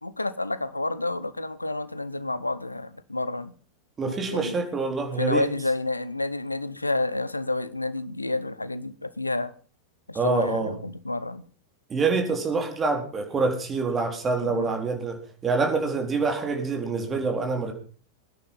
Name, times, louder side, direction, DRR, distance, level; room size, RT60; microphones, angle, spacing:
voice 1, 0.0-3.5 4.1-4.6 5.2-9.5 10.1-11.4 14.4-14.7, left 2 dB, 85° left, 16 dB, 0.9 m, -29 dB
voice 2, 4.0-5.5 10.1-10.7 11.9-17.7, right 4 dB, 20° right, 3 dB, 4.0 m, -26 dB
20.5 x 10.0 x 5.5 m, 0.42 s
figure-of-eight pair, 90°, 0 cm